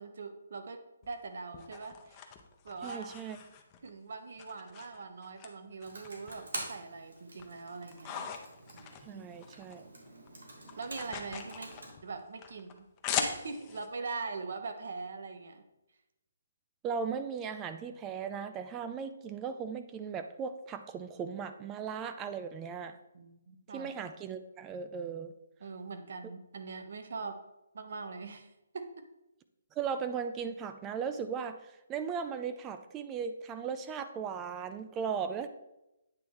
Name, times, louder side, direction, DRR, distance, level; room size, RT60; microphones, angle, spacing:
voice 1, 0.0-2.2 2.6-3.2 3.8-8.3 9.1-9.3 10.8-11.7 12.0-12.7 13.2-15.6 23.1-23.9 25.6-27.4 27.7-29.0, right 4 dB, 65° right, 7 dB, 0.9 m, -42 dB
sound 1, 1.0-3.9 4.4-5.5 5.8-6.8 7.2-9.8 10.1-13.9, left 7 dB, 25° left, 0.6 m, -41 dB
voice 2, 2.8-3.4 9.0-9.9 16.8-23.0 23.7-25.3 29.8-35.5, right 6 dB, 15° right, 9 dB, 0.3 m, -37 dB
Computer keyboard, 5.8-11.9, right 2 dB, 85° right, 1.8 m, -47 dB
8.6 x 3.0 x 4.7 m, 0.92 s
hypercardioid pair, 155°, 0 cm